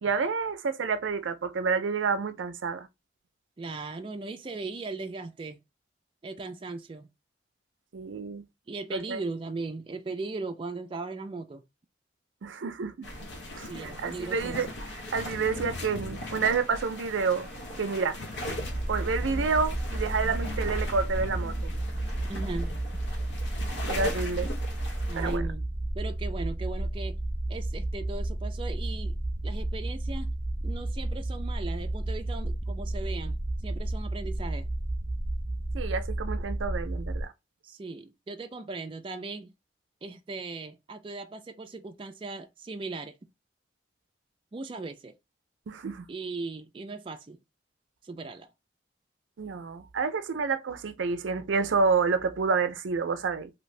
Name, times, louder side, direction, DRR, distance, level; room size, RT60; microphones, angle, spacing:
voice 1, 0.0-2.9 7.9-8.4 8.9-9.2 12.4-13.1 13.5-14.7 15.1-17.5 17.8-18.2 18.9-21.7 23.9-24.5 25.2-25.4 35.7-37.3 45.7-46.1 49.4-53.5, right 5 dB, 90° right, 0.5 m, -29 dB
voice 2, 3.6-5.6 6.2-7.1 8.7-11.6 13.6-14.6 22.2-23.0 25.1-25.7 25.9-27.2 27.5-29.2 29.4-30.3 30.6-33.4 33.6-34.7 37.6-39.5 40.0-43.2 44.5-45.1 46.1-47.4 48.0-48.5, right 3 dB, 30° right, 0.3 m, -38 dB
sound 1, 13.0-25.4, left 1 dB, 70° left, 0.9 m, -39 dB
sound 2, 18.6-37.2, right 1 dB, 5° right, 0.8 m, -32 dB
2.8 x 2.6 x 3.2 m
head